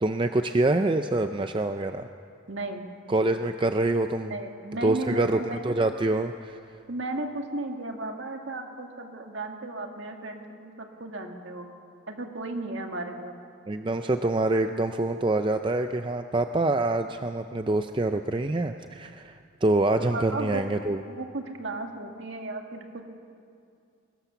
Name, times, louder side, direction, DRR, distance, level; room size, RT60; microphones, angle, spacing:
voice 1, 0.0-2.1 3.1-4.3 4.8-6.6 13.7-21.0, right 2 dB, 25° right, 7 dB, 0.4 m, -26 dB
voice 2, 2.5-2.9 4.3-5.8 6.9-11.6 12.1-13.4 20.1-20.6 21.1-23.0, right 2 dB, 60° right, 3 dB, 1.9 m, -35 dB
22.5 x 18.0 x 7.0 m, 2.4 s
head